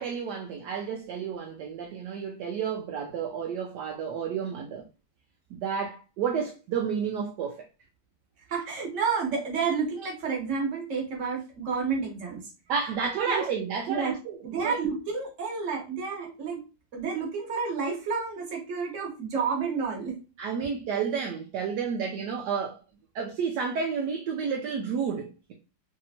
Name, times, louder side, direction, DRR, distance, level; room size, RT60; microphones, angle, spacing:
voice 1, 0.0-4.8 5.5-7.7 12.7-14.4 14.6-14.8 20.4-22.8 23.1-25.5, right 6 dB, 75° right, 1.0 m, -31 dB
voice 2, 8.5-12.4 13.3-13.5 13.9-14.1 14.4-16.6 16.9-20.2, right 5 dB, 50° right, 1.2 m, -30 dB
3.3 x 2.8 x 2.7 m
omnidirectional pair, 2.0 m